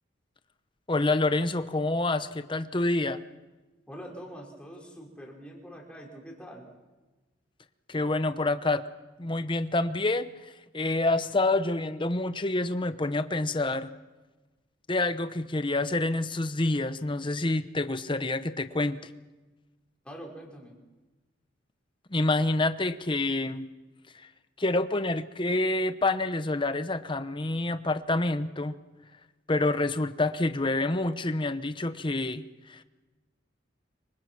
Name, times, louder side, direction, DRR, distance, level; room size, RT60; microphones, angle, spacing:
voice 1, 0.9-3.2 7.9-8.8 9.2-10.3 10.7-13.9 14.9-19.0 22.1-23.6 24.6-28.7 29.5-32.4 32.7-32.8, left 2 dB, 25° left, 11 dB, 0.9 m, -27 dB
voice 2, 3.9-6.7 20.0-20.7, equal, 5° left, -1 dB, 5.1 m, -44 dB
26.0 x 24.5 x 6.0 m, 1.2 s
head